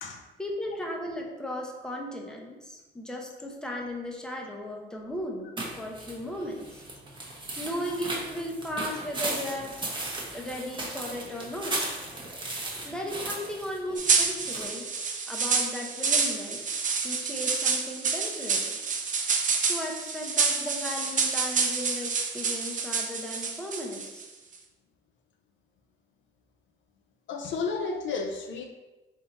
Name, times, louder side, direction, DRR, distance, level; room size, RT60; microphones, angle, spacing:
voice 1, 0.4-6.8 7.6-9.9 10.3-11.8 12.8-14.8 15.3-16.6 17.0-18.8 19.7-24.2, left 1 dB, 5° left, 0 dB, 0.7 m, -36 dB
sound 1, 5.6-14.6, right 2 dB, 25° right, 1.0 m, -36 dB
sound 2, 14.0-24.2, right 5 dB, 40° right, 0.6 m, -28 dB
voice 2, 27.3-28.7, left 4 dB, 70° left, 3 dB, 0.6 m, -32 dB
3.7 x 2.7 x 4.1 m, 1.1 s
cardioid pair, 90°, 20 cm